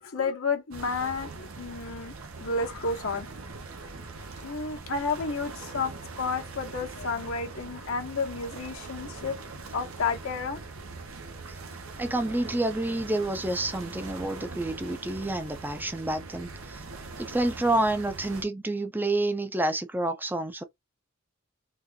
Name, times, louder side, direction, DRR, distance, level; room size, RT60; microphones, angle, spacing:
voice 1, 0.0-2.1 2.4-3.3 4.4-9.4 9.7-10.6, left 4 dB, 75° left, 1.1 m, -31 dB
sound 1, 0.7-18.4, right 3 dB, 75° right, 0.9 m, -42 dB
voice 2, 12.0-16.8 17.2-20.6, right 2 dB, 10° right, 0.6 m, -29 dB
4.0 x 2.5 x 2.6 m
head